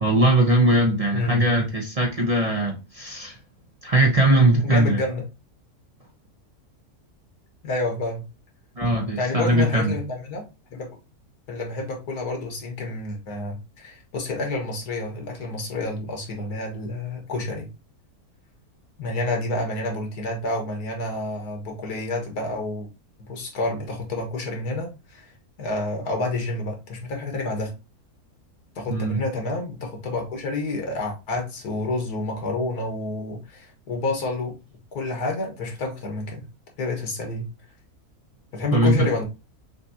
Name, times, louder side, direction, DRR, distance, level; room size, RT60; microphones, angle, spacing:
voice 1, 0.0-3.4 3.8-5.0 8.8-9.9 28.9-29.2 38.7-39.1, right 1 dB, 30° right, 0.8 m, -20 dB
voice 2, 1.1-1.4 4.5-5.3 7.6-8.2 9.2-10.4 10.7-10.9 11.5-17.7 19.0-22.9 23.2-25.3 25.6-27.7 28.8-34.5 34.9-36.5 36.8-37.5 38.5-39.2, left 2 dB, 85° left, 1.9 m, -29 dB
6.1 x 2.7 x 2.7 m
omnidirectional pair, 1.6 m